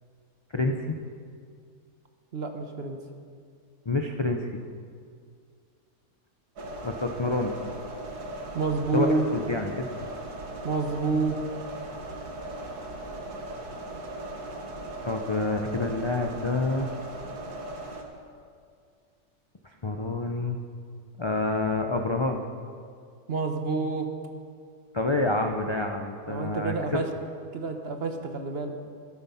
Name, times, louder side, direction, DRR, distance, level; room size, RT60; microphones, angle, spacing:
voice 1, 0.5-1.0 3.9-4.6 6.8-7.5 8.9-9.9 15.0-17.0 19.8-20.6 21.2-22.4 24.9-27.0, left 2 dB, 40° left, 2 dB, 0.4 m, -28 dB
voice 2, 2.3-3.0 8.5-9.2 10.6-11.4 23.3-24.1 26.3-27.0 27.5-28.7, right 4 dB, 45° right, 5 dB, 1.1 m, -28 dB
sound 1, 6.6-18.0, right 1 dB, 90° right, 1.9 m, -38 dB
13.5 x 11.5 x 5.6 m, 2.2 s
omnidirectional pair, 1.6 m